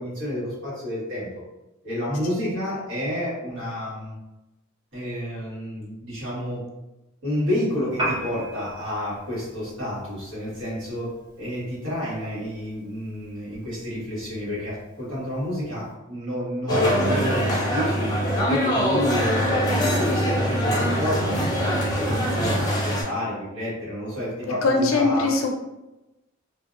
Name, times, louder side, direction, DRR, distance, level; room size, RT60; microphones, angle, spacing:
voice 1, 0.0-1.4 1.8-4.2 4.9-6.6 7.2-11.1 11.4-18.2 18.4-21.4 21.8-25.3, left 1 dB, 60° right, -8 dB, 1.3 m, -29 dB
Piano, 7.9-15.9, right 1 dB, 20° right, 0.6 m, -38 dB
sound 1, 16.7-23.0, equal, 20° left, 0.6 m, -23 dB
voice 2, 24.6-25.5, left 3 dB, 70° left, 1 dB, 0.5 m, -21 dB
2.5 x 2.0 x 2.5 m, 0.99 s
head